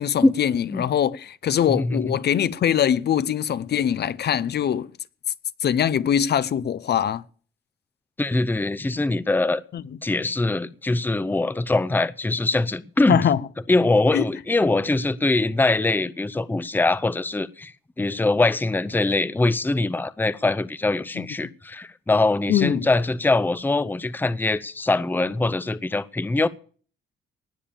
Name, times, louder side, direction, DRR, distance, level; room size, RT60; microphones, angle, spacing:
voice 1, 0.0-4.9 5.6-7.2 9.7-9.8 13.1-13.4 14.1-14.2 21.2-21.3 22.5-22.9, left 9 dB, 55° left, 0.7 m, -22 dB
voice 2, 1.7-2.0 8.2-9.6 10.0-13.3 13.7-26.5, left 2 dB, 10° left, 0.7 m, -23 dB
19.0 x 7.0 x 7.1 m
cardioid pair, 90°, 20 cm